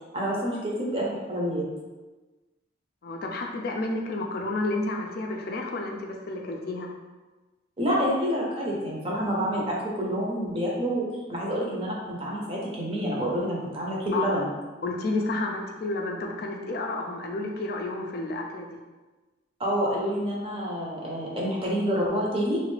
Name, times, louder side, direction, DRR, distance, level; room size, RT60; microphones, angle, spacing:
voice 1, 0.1-1.6 7.8-14.5 19.6-22.6, equal, 30° right, -4 dB, 0.7 m, -28 dB
voice 2, 3.0-6.9 14.1-14.3 14.8-18.8, left 2 dB, 55° left, 1 dB, 0.4 m, -31 dB
3.1 x 2.5 x 3.2 m, 1.2 s
head